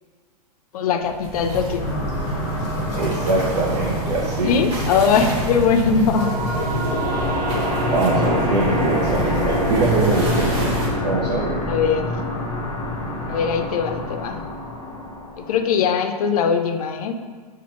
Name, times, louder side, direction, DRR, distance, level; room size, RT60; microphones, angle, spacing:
voice 1, 0.7-1.9 4.4-6.3 11.7-12.1 13.3-14.4 15.4-17.1, left 6 dB, 65° left, 7 dB, 0.4 m, -21 dB
sound 1, 1.0-10.9, right 1 dB, 30° right, 1.1 m, -28 dB
sound 2, 1.8-15.6, left 1 dB, 15° left, 1.1 m, -26 dB
voice 2, 2.9-4.7 7.9-10.8 11.0-11.6, right 2 dB, 70° right, -4 dB, 0.7 m, -22 dB
5.3 x 2.4 x 2.9 m, 1.5 s
hypercardioid pair, 150°, 21 cm